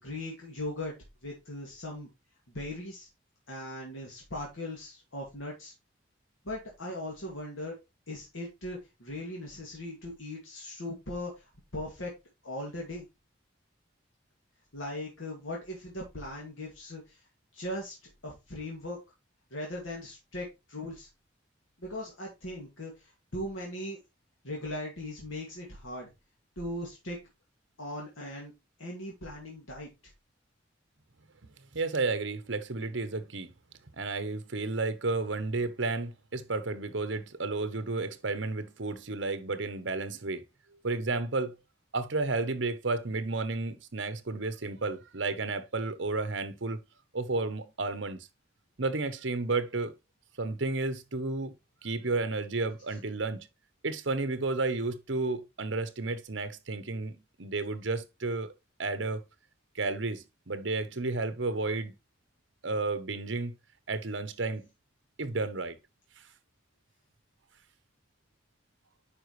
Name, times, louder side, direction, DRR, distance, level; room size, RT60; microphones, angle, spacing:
voice 1, 0.0-0.9 1.2-2.1 2.5-3.1 3.5-5.7 6.4-7.7 8.1-11.4 11.7-12.1 12.4-13.1 14.7-17.2 17.5-19.0 19.5-21.1 21.8-24.0 24.4-26.1 26.6-27.2 27.8-28.5 28.8-29.9, left 1 dB, 85° left, 2.3 m, -39 dB
voice 2, 31.7-33.5 33.9-40.4 40.8-41.5 41.9-46.8 47.1-48.3 48.8-49.9 50.4-51.5 51.8-53.5 53.8-58.5 58.8-59.2 59.7-61.9 62.6-63.5 63.9-64.7 65.2-65.8, right 3 dB, 65° right, 1.0 m, -32 dB
10.0 x 5.0 x 3.1 m
head